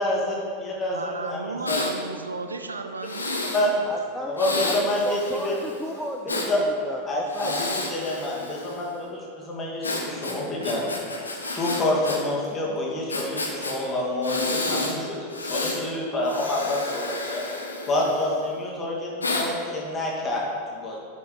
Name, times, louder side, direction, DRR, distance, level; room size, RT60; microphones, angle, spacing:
voice 1, 0.0-1.8 3.5-3.7 4.3-5.5 6.5-6.6 7.1-7.5 7.9-10.9 11.5-17.4 17.9-21.0, left 1 dB, 20° left, -4 dB, 2.1 m, -27 dB
voice 2, 0.9-3.9, right 3 dB, 75° right, 7 dB, 0.4 m, -34 dB
Breathing, 1.7-1.9 3.0-3.7 4.4-6.5 7.3-8.9 9.8-12.2 12.4-12.5 13.1-13.7 14.2-14.9 15.3-15.8 16.2-18.4 19.2-19.5, left 2 dB, 80° left, 1.1 m, -30 dB
voice 3, 3.9-4.4 4.7-4.8 5.0-7.6, right 1 dB, 5° right, 0 dB, 0.5 m, -34 dB
11.0 x 5.2 x 3.9 m, 2.1 s
figure-of-eight pair, 90°, 0 cm